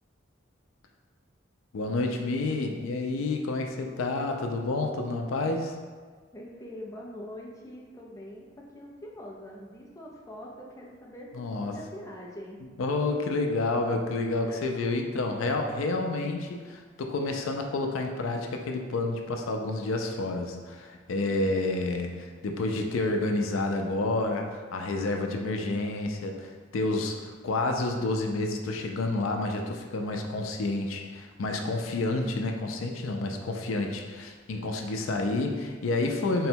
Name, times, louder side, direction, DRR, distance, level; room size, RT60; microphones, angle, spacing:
voice 1, 1.7-5.8 11.3-11.8 12.8-36.5, left 2 dB, 85° left, 3 dB, 0.4 m, -29 dB
voice 2, 6.3-12.6 14.5-14.7 21.2-22.1, equal, 15° left, -3 dB, 0.5 m, -44 dB
3.8 x 2.2 x 4.3 m, 1.5 s
head